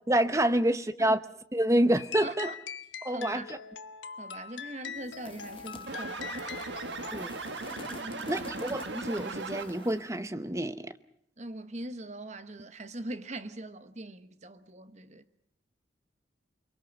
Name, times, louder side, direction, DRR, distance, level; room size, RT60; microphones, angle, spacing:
voice 1, 0.1-1.2 1.5-2.5 3.0-3.4 7.1-7.4 8.3-10.9, right 1 dB, 15° right, 0.8 m, -27 dB
sound 1, 2.0-7.3, left 7 dB, 80° left, 1.0 m, -42 dB
voice 2, 2.2-2.6 3.1-3.5 4.2-6.5 7.9-8.4 11.4-15.2, right 2 dB, 35° right, 1.1 m, -41 dB
sound 2, 5.0-10.1, left 2 dB, 25° left, 1.1 m, -48 dB
sound 3, 5.9-10.0, right 3 dB, 70° right, 1.7 m, -38 dB
29.0 x 22.5 x 5.4 m
head